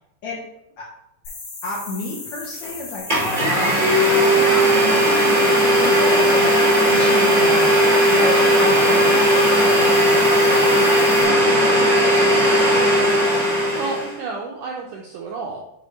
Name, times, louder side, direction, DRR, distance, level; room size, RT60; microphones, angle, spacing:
sound 1, 1.2-11.2, left 3 dB, 55° left, 3.4 m, -36 dB
voice 1, 1.6-3.7 4.3-6.6 6.9-7.8 8.1-12.0, left 3 dB, 70° left, -4 dB, 1.8 m, -30 dB
Domestic sounds home sounds, 2.6-2.7 3.1-14.1, equal, 35° right, 0.5 m, -16 dB
voice 2, 13.4-15.6, right 3 dB, 90° right, 0 dB, 1.8 m, -31 dB
8.5 x 3.8 x 3.2 m, 0.82 s
omnidirectional pair, 4.4 m